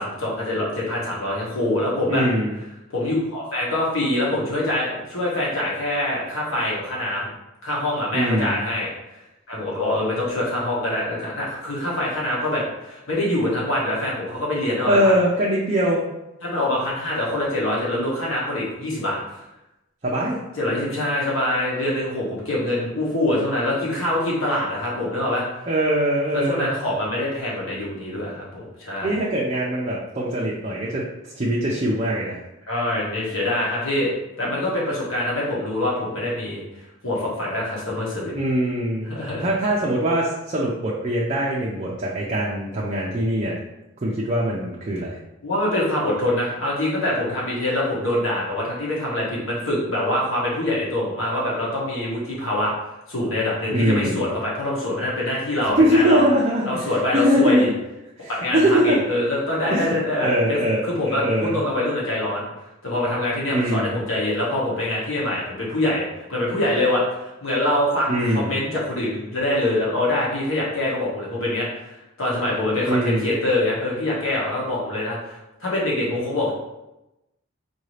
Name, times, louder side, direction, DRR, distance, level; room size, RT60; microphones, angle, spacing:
voice 1, 0.0-2.2 2.9-7.3 7.6-8.9 9.5-15.1 16.4-19.2 20.6-25.4 26.3-29.2 32.7-36.6 37.0-38.3 39.1-39.4 45.4-52.7 53.1-56.2 56.6-57.7 58.2-62.5 62.8-67.0 67.4-76.5, left 1 dB, 85° left, -5 dB, 1.4 m, -24 dB
voice 2, 2.1-2.6 8.1-8.6 14.9-16.1 20.0-20.4 25.7-26.7 29.0-31.0 31.4-32.4 38.3-39.1 39.4-43.6 44.0-45.2 53.7-54.2 55.8-57.6 58.2-59.0 59.7-61.6 63.5-64.0 68.1-68.5 72.9-73.3, equal, 35° right, -4 dB, 0.5 m, -22 dB
4.6 x 2.7 x 3.2 m, 0.94 s
head